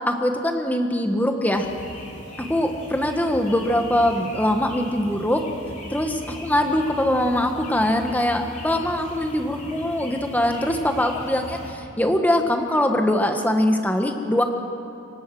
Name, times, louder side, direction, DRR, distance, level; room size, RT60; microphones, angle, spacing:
voice 1, 0.1-1.7 2.4-5.4 5.9-11.6 12.0-14.4, left 1 dB, 10° left, 4 dB, 1.5 m, -22 dB
sound 1, 1.5-11.7, left 1 dB, 35° left, 4.0 m, -39 dB
26.0 x 24.5 x 6.3 m, 2.9 s
head